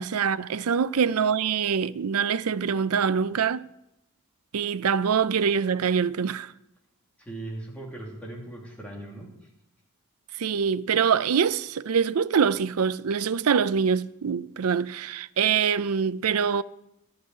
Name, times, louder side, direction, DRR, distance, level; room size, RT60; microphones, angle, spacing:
voice 1, 0.0-3.6 4.5-6.5 10.4-16.6, right 6 dB, 80° right, 0.5 m, -24 dB
voice 2, 7.3-9.3, right 2 dB, 5° left, 2.6 m, -38 dB
12.5 x 5.7 x 9.0 m
head